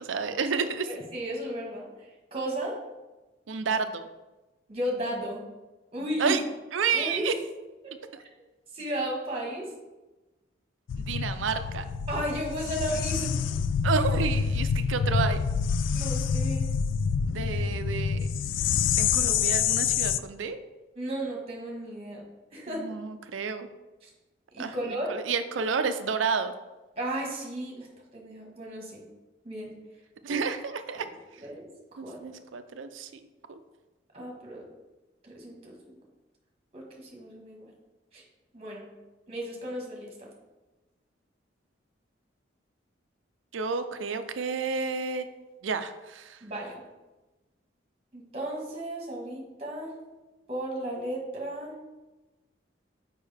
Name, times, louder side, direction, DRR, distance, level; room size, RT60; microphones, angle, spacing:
voice 1, 0.0-0.9 3.5-4.1 6.2-6.4 6.7-7.3 11.0-11.8 13.8-15.4 17.3-18.2 19.0-20.6 22.7-23.7 24.6-26.5 30.2-31.1 32.0-33.2 33.5-33.6 43.5-45.3 45.6-46.4, right 5 dB, 90° right, 9 dB, 0.5 m, -30 dB
voice 2, 0.8-1.9 2.3-2.8 4.7-5.4 5.9-6.4 6.9-7.3 7.8-8.3 8.7-9.7 12.1-13.6 15.9-16.7 19.1-19.4 21.0-22.2 22.5-22.9 24.0-24.1 24.5-25.1 27.0-27.9 28.1-29.0 29.4-29.7 30.3-30.4 31.4-31.7 32.0-32.4 34.1-34.6 35.2-35.7 36.7-37.7 38.1-38.2 38.5-38.9 39.3-40.3 46.4-46.8 48.1-49.9 50.5-51.7, right 1 dB, 30° right, -1 dB, 1.5 m, -34 dB
sound 1, 10.9-20.2, left 6 dB, 80° left, 0.3 m, -27 dB
6.4 x 5.1 x 3.4 m, 1.1 s
head